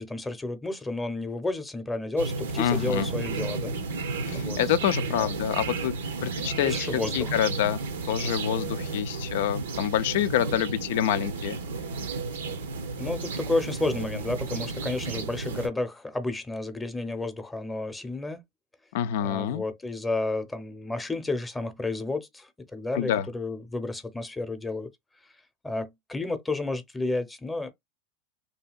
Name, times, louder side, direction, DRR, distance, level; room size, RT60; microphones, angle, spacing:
voice 1, 0.0-3.7 4.3-4.6 5.1-5.3 6.6-7.3 13.0-18.4 19.2-24.9 25.6-27.7, left 2 dB, 10° left, 0.7 m, -31 dB
sound 1, 2.2-15.7, right 3 dB, 85° right, 0.7 m, -33 dB
voice 2, 2.6-3.1 4.2-5.9 6.2-7.8 8.1-11.6 18.9-19.6 22.9-23.3, left 11 dB, 70° left, 0.4 m, -27 dB
2.7 x 2.7 x 2.3 m
hypercardioid pair, 110°, 0 cm